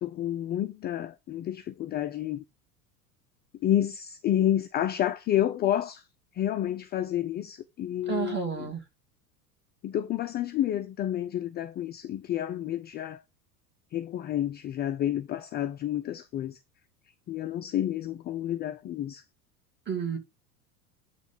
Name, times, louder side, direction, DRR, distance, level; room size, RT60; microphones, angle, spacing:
voice 1, 0.0-2.4 3.6-6.1 6.3-8.7 9.8-13.2 13.9-16.6 17.3-19.2, left 11 dB, 20° left, 0.5 m, -30 dB
voice 2, 8.1-8.8 19.9-20.2, right 7 dB, 20° right, 2.6 m, -31 dB
9.0 x 3.3 x 5.5 m
figure-of-eight pair, 80°, 47 cm